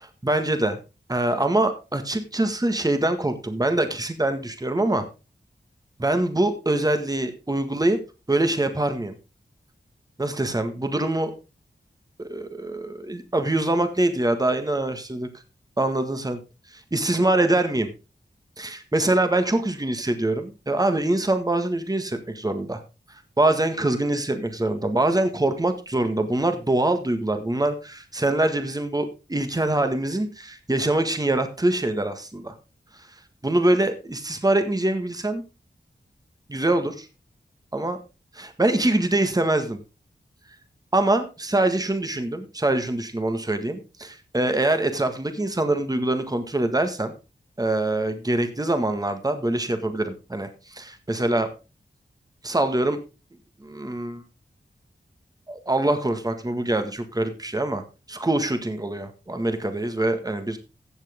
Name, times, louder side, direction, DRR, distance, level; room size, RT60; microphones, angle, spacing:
voice 1, 0.2-0.8 1.1-5.0 6.0-8.0 8.3-9.1 10.2-11.3 12.2-15.3 15.8-16.4 16.7-17.9 18.6-22.8 23.4-32.5 33.4-35.4 36.5-37.1 37.7-38.0 38.3-39.8 40.9-47.1 47.6-51.5 52.4-53.0 53.6-54.2 55.5-57.8 58.1-60.6, right 2 dB, 20° right, 8 dB, 1.6 m, -24 dB
15.0 x 7.5 x 3.6 m, 0.29 s
wide cardioid pair, 70°, 19 cm